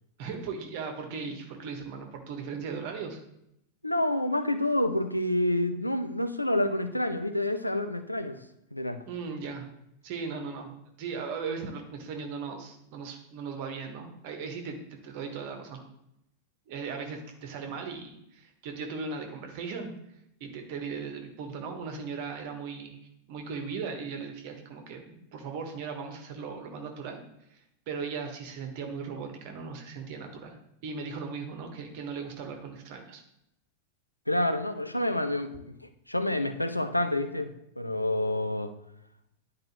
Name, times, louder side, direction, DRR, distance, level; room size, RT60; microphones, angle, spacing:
voice 1, 0.2-3.2 9.1-9.7 10.0-15.8 16.7-19.9 20.4-23.0 23.3-27.2 27.5-30.6 30.8-33.2, right 5 dB, 45° right, 4 dB, 1.4 m, -38 dB
voice 2, 3.8-8.4 8.7-9.0 34.3-38.7, left 1 dB, 85° left, 9 dB, 0.6 m, -28 dB
10.5 x 4.7 x 3.1 m, 0.80 s
figure-of-eight pair, 90°, 0 cm